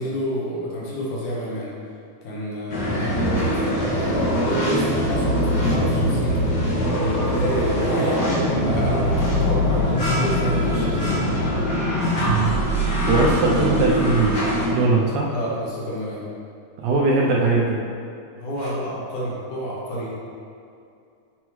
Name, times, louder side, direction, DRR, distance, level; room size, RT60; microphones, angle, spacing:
voice 1, 0.0-1.7 2.2-6.5 7.0-8.2 8.6-11.2 15.3-16.2 18.4-20.1, equal, 70° left, -5 dB, 2.6 m, -29 dB
sound 1, 2.7-14.7, equal, 50° left, 1.2 m, -22 dB
voice 2, 12.2-12.6 12.9-15.3 16.8-17.8 18.6-18.7, right 3 dB, 80° right, -3 dB, 1.8 m, -21 dB
7.1 x 6.2 x 3.1 m, 2.5 s
omnidirectional pair, 3.9 m